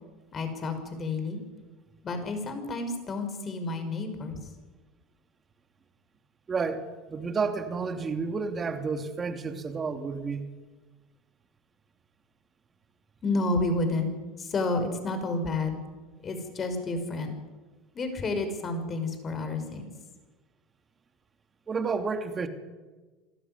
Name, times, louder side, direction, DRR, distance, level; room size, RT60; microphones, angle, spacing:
voice 1, 0.3-1.4 2.0-4.4 13.2-14.1 14.4-15.8 16.2-17.3 17.9-19.8, left 2 dB, 35° left, 7 dB, 5.7 m, -30 dB
voice 2, 6.5-10.5 21.7-22.5, right 4 dB, 30° right, 7 dB, 2.7 m, -31 dB
27.0 x 13.5 x 9.8 m, 1.3 s
supercardioid pair, 100°, 0 cm